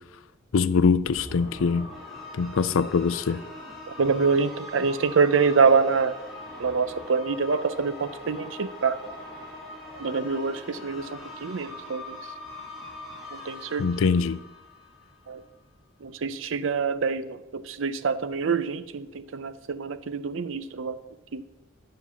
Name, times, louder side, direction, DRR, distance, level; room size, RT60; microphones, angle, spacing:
voice 1, 0.5-1.9 2.4-3.4 13.8-14.4, left 5 dB, 80° left, 14 dB, 0.4 m, -23 dB
sound 1, 1.0-15.3, left 1 dB, ahead, 2.5 m, -42 dB
voice 2, 3.9-6.1 6.6-9.0 10.0-12.2 13.3-13.9 15.3-15.4 16.0-21.0 21.3-21.4, right 5 dB, 70° right, 13 dB, 0.6 m, -25 dB
9.6 x 5.4 x 7.1 m, 1.0 s
head